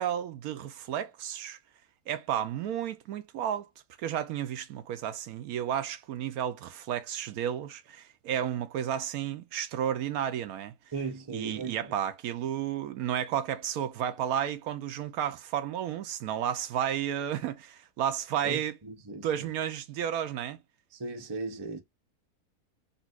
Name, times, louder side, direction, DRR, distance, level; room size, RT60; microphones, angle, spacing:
voice 1, 0.0-1.6 2.1-3.7 4.0-10.7 11.3-18.8 19.2-20.6, right 10 dB, 75° right, 1.0 m, -32 dB
voice 2, 10.9-11.9 18.4-19.5 20.9-21.8, right 4 dB, 25° right, 0.6 m, -37 dB
4.0 x 2.5 x 2.4 m
omnidirectional pair, 1.6 m